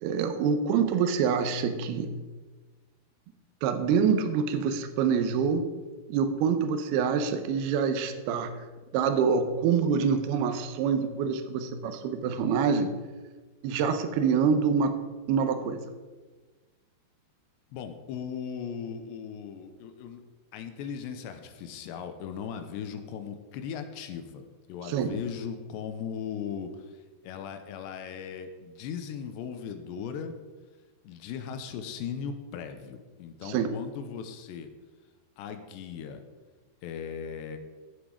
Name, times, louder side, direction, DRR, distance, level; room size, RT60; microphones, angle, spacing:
voice 1, 0.0-2.1 3.6-5.7 6.1-8.5 8.9-12.9 13.6-15.0 15.3-15.8 24.8-25.2 33.4-33.7, right 6 dB, 75° right, 8 dB, 2.7 m, -26 dB
voice 2, 17.7-20.2 20.5-26.7 27.2-30.3 31.0-34.7 35.4-36.2 36.8-37.6, left 7 dB, 90° left, 7 dB, 3.1 m, -38 dB
15.5 x 6.2 x 4.9 m, 1.3 s
omnidirectional pair, 4.9 m